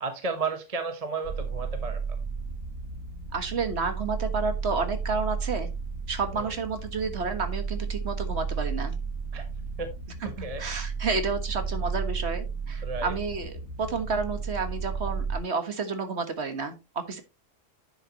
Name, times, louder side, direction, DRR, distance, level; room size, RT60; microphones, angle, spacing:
voice 1, 0.0-2.0 6.3-6.6 9.3-9.5 9.8-10.6 12.8-13.1, right 4 dB, 30° right, 1.1 m, -33 dB
sound 1, 1.2-15.4, right 5 dB, 85° right, 5.1 m, -33 dB
voice 2, 3.3-5.7 6.1-9.0 10.2-10.3 10.6-17.2, right 4 dB, 60° right, 1.7 m, -30 dB
10.0 x 6.6 x 3.0 m
omnidirectional pair, 1.3 m